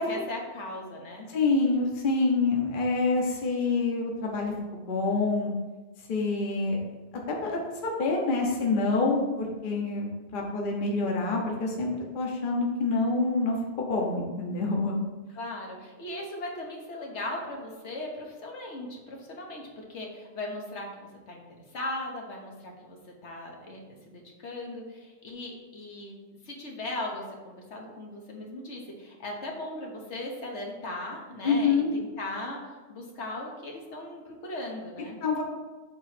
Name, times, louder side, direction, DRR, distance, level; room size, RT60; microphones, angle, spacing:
voice 1, 0.0-1.3 15.3-21.4 21.7-23.8 24.1-26.2 26.4-35.2, left 1 dB, 80° left, -1 dB, 1.5 m, -38 dB
voice 2, 1.3-5.5 6.1-6.8 7.3-15.0 31.4-31.9 35.2-35.4, left 3 dB, 50° left, -1 dB, 1.1 m, -27 dB
7.5 x 3.1 x 5.9 m, 1.2 s
omnidirectional pair, 1.2 m